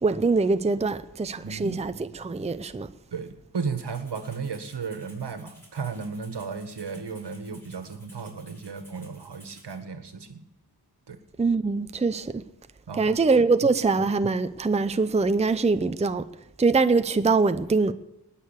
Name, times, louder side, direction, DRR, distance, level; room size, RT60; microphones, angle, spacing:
voice 1, 0.0-2.9 11.4-12.4 13.0-16.3 16.6-17.9, right 4 dB, 15° right, 0.6 m, -23 dB
voice 2, 1.4-1.8 3.1-10.4 11.1-11.2 12.9-13.2, right 5 dB, 80° right, 1.7 m, -34 dB
Rattle (instrument), 3.8-9.8, equal, 5° left, 5.8 m, -55 dB
19.5 x 6.8 x 8.2 m
wide cardioid pair, 95°, 41 cm